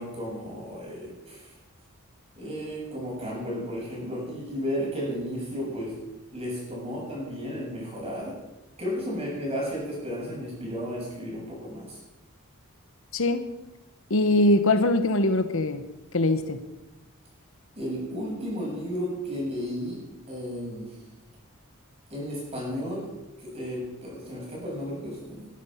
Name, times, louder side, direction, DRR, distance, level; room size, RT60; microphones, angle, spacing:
voice 1, 0.0-1.5 2.4-6.0 6.3-8.4 8.8-12.0 17.8-20.9 22.1-23.1 23.4-25.5, equal, 25° right, -3 dB, 7.7 m, -33 dB
voice 2, 13.1-13.5 14.1-15.8 16.1-16.6, left 2 dB, 65° left, 10 dB, 1.1 m, -22 dB
20.5 x 12.0 x 5.8 m, 0.99 s
head